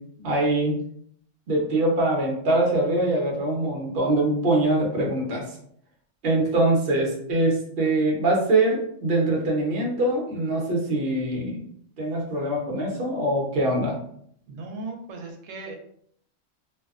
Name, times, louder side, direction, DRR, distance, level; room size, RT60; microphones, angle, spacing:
voice 1, 0.2-0.8 1.5-5.6 6.2-11.7 12.0-14.0, right 2 dB, 55° right, -2 dB, 0.9 m, -23 dB
voice 2, 14.5-15.7, right 3 dB, 80° right, 2 dB, 1.0 m, -37 dB
2.6 x 2.2 x 2.3 m, 0.66 s
omnidirectional pair, 1.3 m